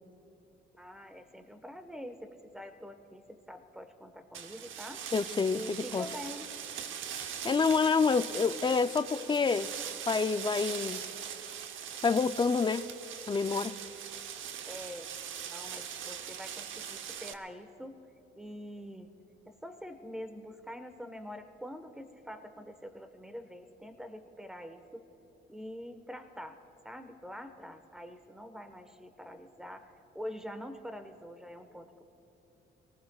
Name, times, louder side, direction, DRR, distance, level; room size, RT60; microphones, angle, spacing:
voice 1, 0.8-5.0 5.5-6.5 14.7-15.1 15.4-18.0 18.4-19.1 19.5-25.0 25.5-26.6 26.8-32.0, equal, 5° right, 8 dB, 1.2 m, -45 dB
sound 1, 4.3-17.3, right 8 dB, 75° right, 0.9 m, -41 dB
voice 2, 5.1-6.1 7.2-9.7 10.1-11.0 12.0-12.8 13.3-13.8, left 5 dB, 25° left, 12 dB, 0.5 m, -28 dB
27.5 x 19.0 x 2.4 m, 2.9 s
cardioid pair, 90°, 20 cm